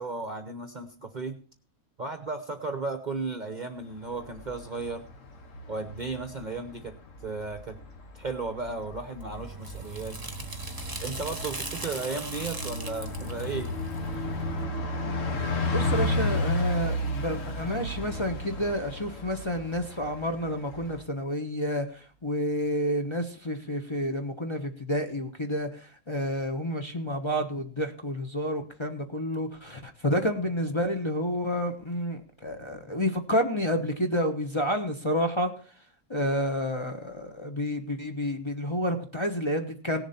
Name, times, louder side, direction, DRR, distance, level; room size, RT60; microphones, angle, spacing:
voice 1, 0.0-1.4 2.0-5.0 5.7-6.9 7.2-7.8 8.1-10.2 11.0-13.7, right 3 dB, 40° right, 8 dB, 0.9 m, -35 dB
Bus, 3.9-21.0, left 1 dB, 65° left, 1.7 m, -33 dB
sound 1, 9.2-14.7, right 3 dB, 15° right, 1.1 m, -39 dB
voice 2, 15.7-35.5 36.1-40.0, equal, 20° left, 3 dB, 1.0 m, -29 dB
17.5 x 7.1 x 4.3 m, 0.40 s
omnidirectional pair, 1.5 m